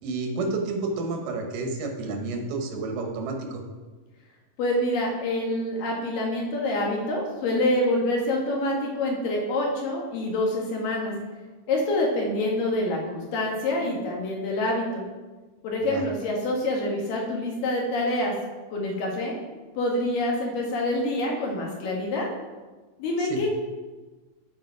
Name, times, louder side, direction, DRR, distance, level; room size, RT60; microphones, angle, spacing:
voice 1, 0.0-3.6 15.9-16.0 23.2-23.4, right 3 dB, 85° right, 3 dB, 2.8 m, -30 dB
voice 2, 4.6-11.1 11.7-15.0 15.6-18.3 18.7-19.3 19.8-22.3 23.0-23.6, left 1 dB, 85° left, -1 dB, 3.3 m, -26 dB
12.0 x 4.7 x 4.7 m, 1.3 s
omnidirectional pair, 3.8 m